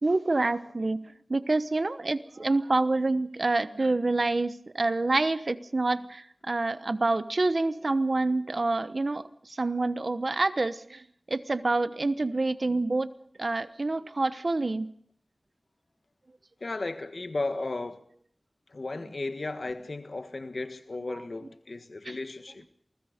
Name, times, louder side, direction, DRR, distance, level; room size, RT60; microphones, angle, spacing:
voice 1, 0.0-13.1 13.4-14.9 21.1-21.2 22.0-22.1, right 2 dB, 65° right, 1.1 m, -27 dB
voice 2, 16.6-18.1 18.7-22.6, left 2 dB, 75° left, 1.5 m, -35 dB
28.5 x 20.0 x 5.2 m
wide cardioid pair, 60°, 0 cm